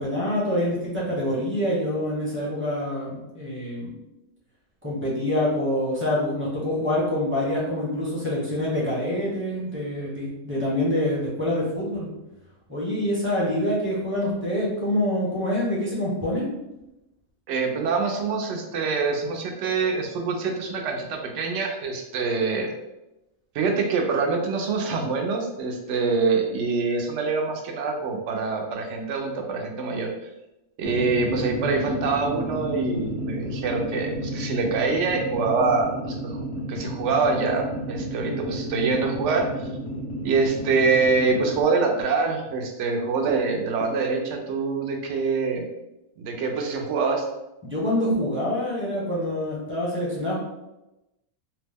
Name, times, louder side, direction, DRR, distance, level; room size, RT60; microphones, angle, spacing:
voice 1, 0.0-3.9 4.8-12.1 12.7-16.5 47.6-50.3, left 1 dB, 10° right, -6 dB, 0.6 m, -26 dB
voice 2, 17.5-22.7 23.5-30.1 30.8-36.4 36.7-39.5 40.2-45.7 46.2-47.2, right 4 dB, 65° right, 2 dB, 0.8 m, -25 dB
sound 1, 30.8-41.6, right 1 dB, 40° left, 0.5 m, -32 dB
2.8 x 2.1 x 3.4 m, 0.94 s
omnidirectional pair, 1.5 m